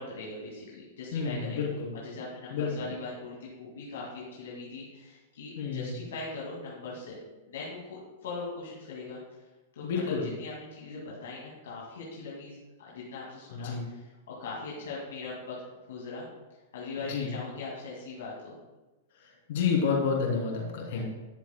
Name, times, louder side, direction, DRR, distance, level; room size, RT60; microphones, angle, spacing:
voice 1, 0.0-1.6 2.0-7.2 7.5-9.2 9.8-14.1 14.4-15.6 15.9-16.3 16.7-18.5 20.9-21.1, left 3 dB, 80° left, -5 dB, 2.1 m, -40 dB
voice 2, 1.1-1.9 2.5-2.7 5.6-6.0 9.8-10.3 13.5-13.8 17.1-17.3 19.5-21.1, left 5 dB, 65° left, -1 dB, 2.8 m, -29 dB
12.5 x 7.3 x 2.2 m, 1.1 s
hypercardioid pair, 130°, 0 cm